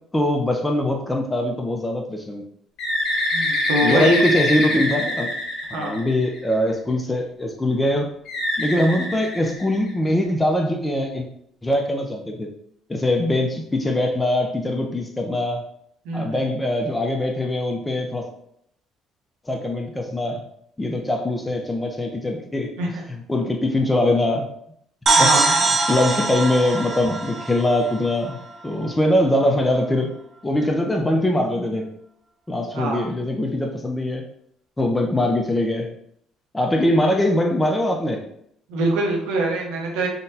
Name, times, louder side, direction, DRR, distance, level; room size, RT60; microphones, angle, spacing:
voice 1, 0.1-2.4 3.8-5.3 5.7-8.1 8.6-11.3 11.6-12.5 12.9-15.6 16.1-18.3 19.5-20.4 20.8-22.7 23.1-24.5 25.2-28.4 28.6-30.1 30.4-31.9 32.5-34.2 34.8-35.9 36.5-38.3, left 1 dB, 15° left, 2 dB, 0.5 m, -22 dB
Bird, 2.8-6.5 8.3-10.1, left 1 dB, 65° left, 1.0 m, -24 dB
voice 2, 3.3-4.2 5.7-6.0 16.0-16.4 22.8-23.0 25.1-25.5 32.7-33.0 38.7-40.1, right 1 dB, 85° right, 0 dB, 0.8 m, -24 dB
sound 1, 25.1-28.7, right 3 dB, 35° right, 0.5 m, -22 dB
3.7 x 2.2 x 2.7 m, 0.71 s
supercardioid pair, 85°, 0 cm